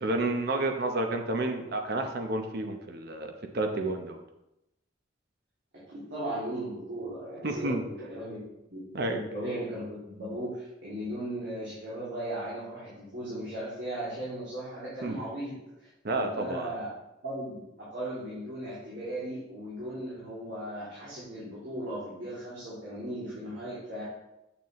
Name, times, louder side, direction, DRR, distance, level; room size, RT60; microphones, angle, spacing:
voice 1, 0.0-4.2 7.4-7.8 8.9-9.2 15.0-15.2 16.0-16.8, right 2 dB, 55° right, 4 dB, 0.8 m, -30 dB
voice 2, 5.9-8.4 8.7-15.5 15.8-16.9 17.2-17.6 17.9-24.0, right 1 dB, 75° right, -10 dB, 2.9 m, -37 dB
7.6 x 7.0 x 3.1 m, 0.89 s
head